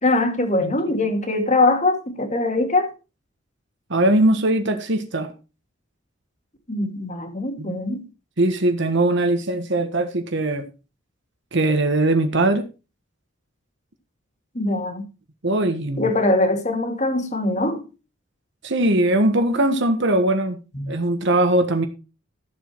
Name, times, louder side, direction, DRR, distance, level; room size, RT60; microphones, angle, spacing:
voice 1, 0.0-2.9 6.7-8.0 14.5-15.1 16.0-17.8 20.7-20.9, left 2 dB, 35° left, 2.3 m, -22 dB
voice 2, 3.9-5.3 7.6-7.8 8.4-10.7 11.5-12.6 15.4-16.0 18.6-20.6 20.9-21.9, right 1 dB, 60° right, 1.5 m, -20 dB
14.0 x 7.4 x 4.5 m
head